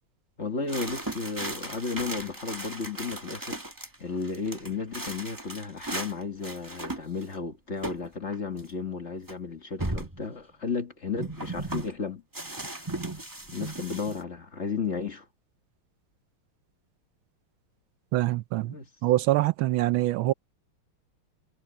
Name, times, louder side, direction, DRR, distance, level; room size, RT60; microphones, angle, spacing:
voice 1, 0.4-3.6 4.0-12.2 13.5-15.3 18.7-18.9, left 5 dB, 35° left, 1.6 m, -33 dB
sound 1, 0.7-3.9 4.2-6.1 6.4-7.4 7.8-8.1 8.3-8.4 9.3-9.4 9.8-10.2 11.2-11.9 12.3-14.2, right 2 dB, 10° right, 1.4 m, -36 dB
voice 2, 18.1-18.7 19.0-20.3, right 16 dB, 80° right, 1.3 m, -24 dB
omnidirectional pair, 2.3 m